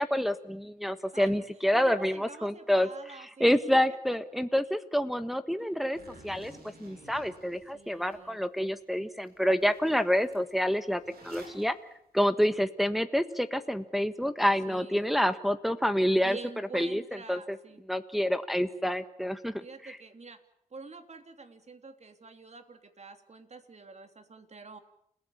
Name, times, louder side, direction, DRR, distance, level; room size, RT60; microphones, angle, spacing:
voice 1, 0.0-6.0 6.2-6.5 6.8-11.7 12.1-16.4 16.7-17.0 17.3-17.6 17.9-20.0, equal, ahead, 9 dB, 1.4 m, -28 dB
voice 2, 1.7-3.6 3.9-4.0 5.6-5.9 7.7-8.4 14.7-15.2 16.2-17.8 19.6-20.4 20.7-24.8, right 4 dB, 45° right, 7 dB, 3.1 m, -47 dB
Zipper (clothing), 5.9-8.2 8.7-8.8 9.2-9.3 9.6-11.6, right 2 dB, 85° right, 7.6 m, -52 dB
29.5 x 16.0 x 8.7 m, 0.74 s
cardioid pair, 65°, 15 cm